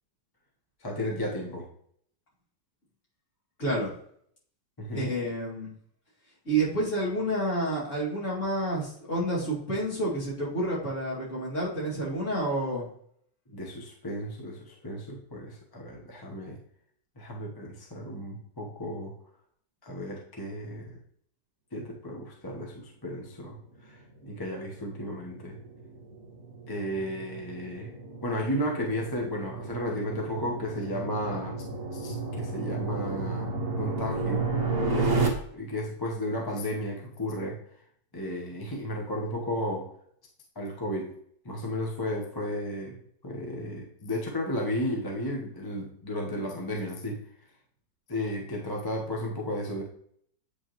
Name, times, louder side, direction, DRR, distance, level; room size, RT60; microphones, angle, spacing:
voice 1, 0.8-1.7 4.8-5.1 13.5-16.6 17.2-19.1 19.8-21.0 21.7-25.6 26.7-27.9 28.2-31.6 31.9-34.5 34.9-37.6 38.1-39.9 40.5-41.1 41.4-47.2 48.1-49.8, equal, 20° left, -1 dB, 0.8 m, -34 dB
voice 2, 3.6-3.9 4.9-5.7 6.5-12.9, right 1 dB, 40° left, -6 dB, 2.8 m, -29 dB
sound 1, 24.2-35.3, right 3 dB, 50° right, 1.6 m, -32 dB
8.4 x 5.5 x 3.0 m, 0.66 s
omnidirectional pair, 1.9 m